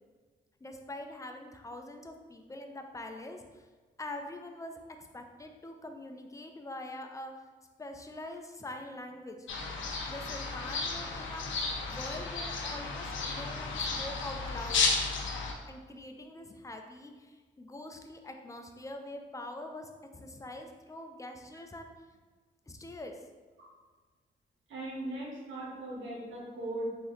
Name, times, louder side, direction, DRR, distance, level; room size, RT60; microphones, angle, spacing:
voice 1, 0.6-3.7 4.0-4.8 5.1-7.3 7.8-9.5 10.1-14.9 15.7-21.9 22.7-23.2, left 1 dB, 15° left, 4 dB, 0.5 m, -44 dB
sound 1, 9.5-15.5, left 4 dB, 75° left, 0.5 m, -33 dB
voice 2, 24.7-27.0, right 1 dB, 80° right, -5 dB, 1.1 m, -38 dB
3.8 x 2.6 x 3.1 m, 1.4 s
cardioid pair, 55°, 20 cm